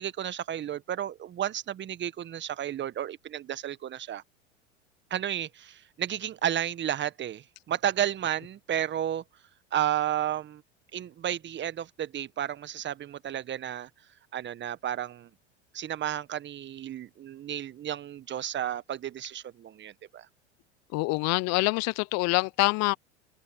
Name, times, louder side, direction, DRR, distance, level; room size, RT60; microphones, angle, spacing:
voice 1, 0.0-4.2 5.1-9.2 9.7-10.6 10.9-13.9 14.3-15.3 15.7-20.3, right 11 dB, 30° right, 1.5 m, -32 dB
voice 2, 20.9-23.0, left 25 dB, 45° left, 0.8 m, -25 dB
open air
hypercardioid pair, 85°, 36 cm